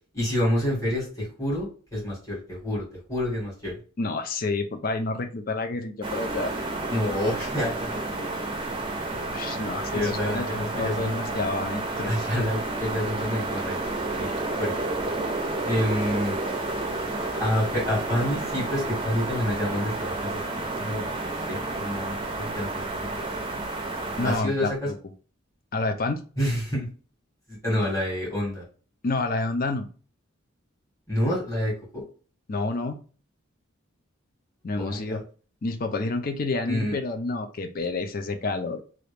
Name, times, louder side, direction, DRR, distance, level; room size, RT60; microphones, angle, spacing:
voice 1, 0.1-3.8 6.9-8.9 9.9-11.1 12.1-13.8 14.1-14.3 14.6-14.7 15.6-16.4 17.4-20.4 20.8-23.3 24.2-24.9 26.4-26.9 27.5-28.6 31.1-32.0 34.8-35.2 36.7-37.0, left 1 dB, 15° left, -6 dB, 1.7 m, -28 dB
voice 2, 4.0-6.5 9.3-12.1 24.2-24.9 25.7-26.2 29.0-29.9 32.5-33.0 34.6-35.2 35.6-38.8, left 3 dB, 45° left, 7 dB, 0.5 m, -29 dB
sound 1, 6.0-24.4, right 2 dB, 25° right, 0.5 m, -30 dB
3.0 x 2.4 x 3.3 m, 0.38 s
head